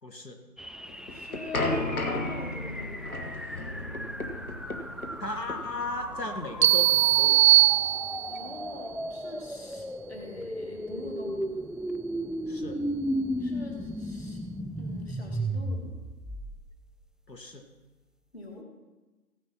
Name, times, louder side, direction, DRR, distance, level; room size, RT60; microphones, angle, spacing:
voice 1, 0.0-0.4 5.2-7.4 12.5-12.8 17.3-17.6, left 2 dB, 90° left, 4 dB, 1.9 m, -36 dB
sound 1, 0.6-16.9, equal, ahead, 0.3 m, -35 dB
sound 2, 0.9-7.7, left 2 dB, 60° left, 1.8 m, -34 dB
voice 2, 1.1-1.9 2.3-3.2 8.3-11.6 13.4-14.4 14.8-15.9 18.3-18.7, left 2 dB, 40° left, 1 dB, 2.2 m, -43 dB
sound 3, 6.6-8.5, right 14 dB, 75° right, 0.7 m, -20 dB
16.0 x 10.0 x 4.6 m, 1.2 s
figure-of-eight pair, 165°, 48 cm